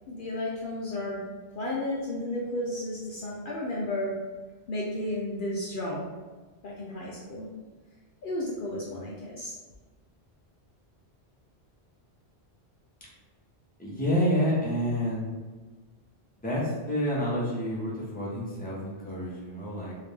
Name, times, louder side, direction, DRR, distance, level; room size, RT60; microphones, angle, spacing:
voice 1, 0.1-1.2 1.5-4.1 4.7-6.1 6.6-7.5 8.2-9.5, left 1 dB, 60° left, -4 dB, 0.7 m, -33 dB
voice 2, 13.8-15.3 16.4-19.9, equal, 10° left, -6 dB, 0.9 m, -28 dB
3.3 x 2.8 x 3.3 m, 1.3 s
omnidirectional pair, 1.1 m